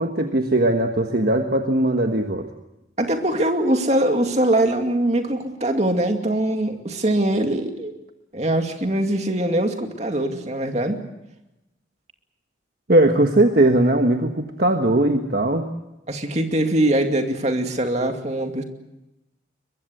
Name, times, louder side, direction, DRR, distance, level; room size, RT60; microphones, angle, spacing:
voice 1, 0.0-2.5 12.9-15.7, right 1 dB, 50° right, 4 dB, 1.4 m, -19 dB
voice 2, 3.0-7.9 8.3-11.0 16.1-18.6, right 1 dB, 35° right, 4 dB, 2.4 m, -22 dB
23.0 x 22.5 x 8.0 m, 0.94 s
head